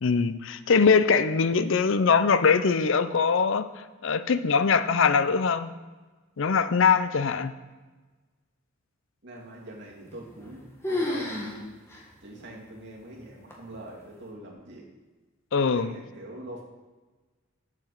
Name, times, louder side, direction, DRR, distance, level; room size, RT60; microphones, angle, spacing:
voice 1, 0.0-3.7 4.0-5.7 6.4-7.5 15.5-15.9, left 5 dB, 65° left, 12 dB, 0.5 m, -22 dB
voice 2, 0.8-1.1 9.2-11.6 12.2-14.9 15.6-16.6, right 1 dB, 60° right, -2 dB, 2.3 m, -43 dB
sound 1, 10.1-10.6 10.8-11.6 11.9-12.0 12.7-12.8 13.5-13.9, left 1 dB, 15° left, 1.6 m, -31 dB
7.9 x 7.3 x 6.5 m, 1.3 s
head